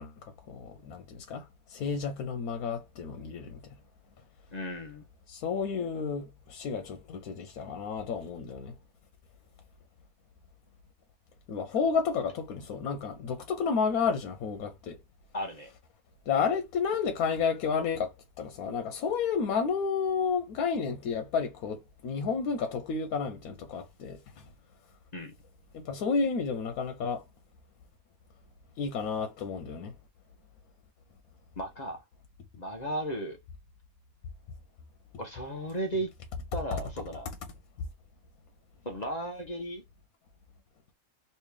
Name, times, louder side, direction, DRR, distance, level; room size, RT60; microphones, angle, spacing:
voice 1, 0.0-3.6 5.3-8.7 11.5-15.0 16.3-24.2 25.7-27.2 28.8-29.9, left 5 dB, 90° left, 1.1 m, -31 dB
voice 2, 4.5-5.0 15.3-15.7 25.1-25.3 31.6-32.0 32.5-33.4 35.2-36.1 36.5-37.3 38.8-39.8, right 1 dB, 40° left, 0.7 m, -35 dB
3.2 x 2.7 x 3.2 m
omnidirectional pair, 1.5 m